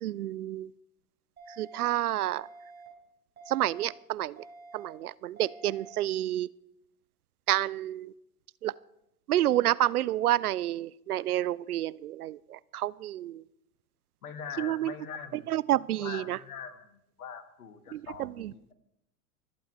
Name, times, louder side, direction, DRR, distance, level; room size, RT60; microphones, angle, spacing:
voice 1, 0.0-0.7 1.5-2.5 3.5-4.4 4.7-6.5 7.5-8.1 8.6-8.7 9.3-13.4 14.6-14.9 15.5-16.4 17.9-18.5, right 13 dB, 70° right, 21 dB, 0.6 m, -29 dB
sound 1, 1.4-1.9 2.4-2.9 3.4-3.9 4.4-4.9 5.4-5.9, right 3 dB, 20° right, 4.9 m, -49 dB
voice 2, 14.2-18.7, left 7 dB, 65° left, 11 dB, 1.6 m, -43 dB
24.5 x 8.4 x 4.6 m, 0.80 s
figure-of-eight pair, 85°, 47 cm